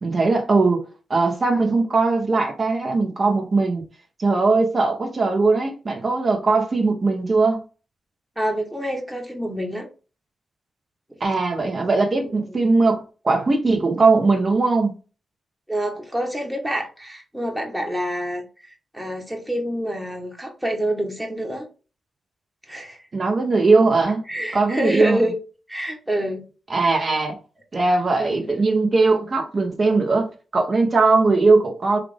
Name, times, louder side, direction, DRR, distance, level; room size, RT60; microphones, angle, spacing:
voice 1, 0.0-0.8 1.1-3.8 4.2-7.6 11.2-14.9 23.1-24.2 24.5-25.3 26.7-27.4 27.7-32.0, right 3 dB, 50° right, 1.1 m, -19 dB
voice 2, 8.4-9.9 12.3-12.4 15.7-21.7 22.7-23.0 24.3-25.3 25.7-26.5 26.8-27.0 28.2-28.4, equal, 15° right, 1.2 m, -27 dB
3.3 x 2.5 x 3.4 m
supercardioid pair, 40°, 0 cm